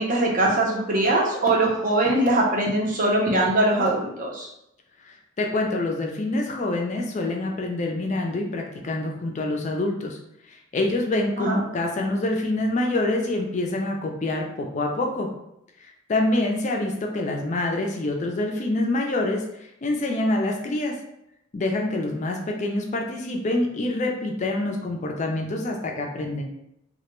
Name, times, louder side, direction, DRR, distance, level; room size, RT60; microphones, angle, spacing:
voice 1, 0.0-4.5 11.4-11.6, right 2 dB, 40° right, -3 dB, 0.6 m, -22 dB
voice 2, 5.0-10.2 10.5-15.3 15.8-19.4 19.8-21.0 21.5-26.4, left 2 dB, 35° left, 1 dB, 0.3 m, -26 dB
2.2 x 2.1 x 2.9 m, 0.82 s
head